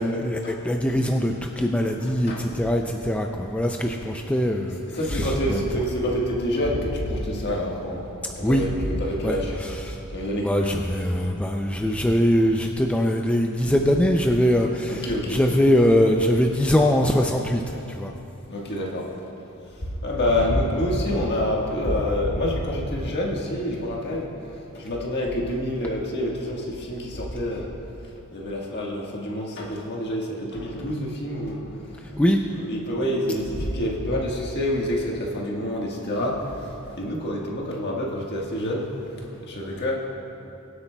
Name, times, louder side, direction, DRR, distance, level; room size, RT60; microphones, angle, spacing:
voice 1, 0.0-4.8 5.1-5.6 8.4-8.6 9.2-10.0 10.4-18.1 32.2-32.4, equal, 5° left, 2 dB, 0.3 m, -22 dB
voice 2, 2.1-2.5 4.9-9.6 10.1-10.7 14.9-15.4 18.5-19.3 19.8-24.3 24.7-27.7 28.0-32.2 32.5-40.0, left 1 dB, 50° left, -2 dB, 1.5 m, -27 dB
22.5 x 8.1 x 2.2 m, 2.9 s
head